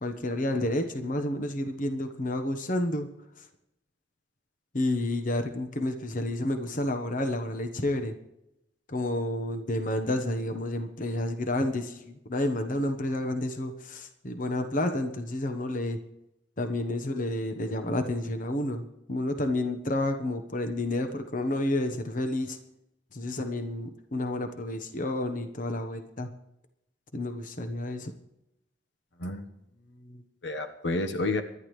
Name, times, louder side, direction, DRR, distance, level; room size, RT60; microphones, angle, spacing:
voice 1, 0.0-3.1 3.4-3.5 4.7-8.2 8.9-16.0 16.6-22.6 23.1-26.3 27.1-28.1, left 1 dB, 45° left, 7 dB, 1.2 m, -30 dB
voice 2, 29.9-31.4, left 2 dB, 75° left, 7 dB, 1.3 m, -31 dB
25.5 x 12.0 x 3.3 m, 0.87 s
head